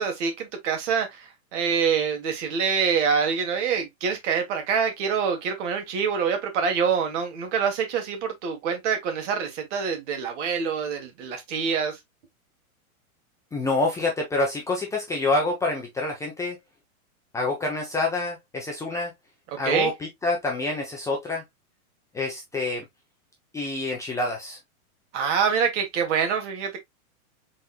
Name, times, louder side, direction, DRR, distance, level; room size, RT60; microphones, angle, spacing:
voice 1, 0.0-12.0 19.7-19.9 25.1-26.8, right 6 dB, 55° right, 1.8 m, -25 dB
voice 2, 13.5-16.6 17.3-19.1 19.6-21.4 22.1-22.8 23.5-24.6, left 2 dB, 5° left, 0.6 m, -27 dB
4.3 x 4.0 x 2.4 m
supercardioid pair, 150°, 43 cm